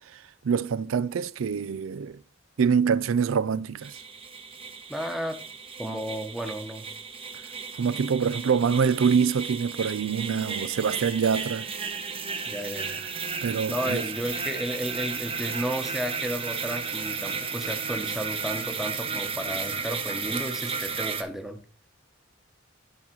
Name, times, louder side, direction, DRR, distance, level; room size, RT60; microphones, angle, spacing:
voice 1, 0.1-2.2 2.6-4.0 7.7-11.7 13.4-14.1, right 6 dB, 90° right, 0.4 m, -25 dB
sound 1, 3.8-21.2, right 5 dB, 30° right, 1.0 m, -34 dB
voice 2, 4.9-5.4 5.8-6.9 12.5-13.0 13.7-21.6, equal, ahead, 1.0 m, -33 dB
11.5 x 4.0 x 4.6 m
head